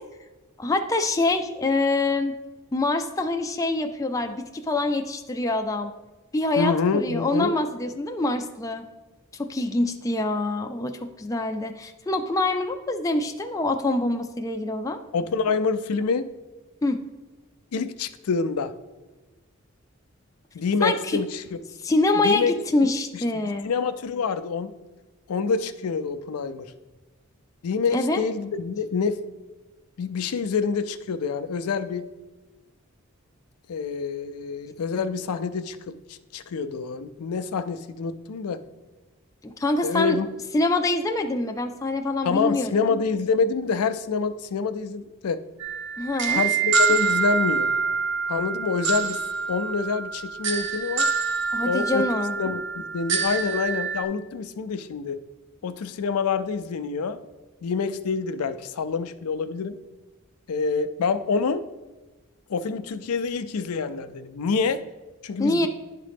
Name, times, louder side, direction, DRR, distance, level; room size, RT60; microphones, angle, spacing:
voice 1, 0.6-2.4 2.7-5.9 6.3-8.9 9.4-15.0 16.8-17.0 20.8-21.2 21.8-23.7 27.9-28.2 39.4-40.2 40.5-42.7 46.0-46.4 51.5-52.3 65.4-65.7, left 2 dB, 15° left, 5 dB, 0.3 m, -25 dB
voice 2, 6.6-7.6 15.1-16.2 17.7-18.7 20.5-21.6 22.1-22.5 23.1-23.2 23.6-24.7 25.3-26.7 27.6-29.2 30.0-32.1 33.7-38.6 39.8-40.3 42.2-45.4 46.3-47.7 48.3-49.2 49.5-51.1 51.6-52.1 52.4-55.2 55.6-57.2 57.6-59.8 60.5-61.6 62.5-64.8 65.2-65.7, left 5 dB, 85° left, 11 dB, 0.4 m, -27 dB
sound 1, 45.6-54.0, right 5 dB, 55° right, 0.7 m, -26 dB
10.5 x 3.8 x 3.5 m, 1.2 s
head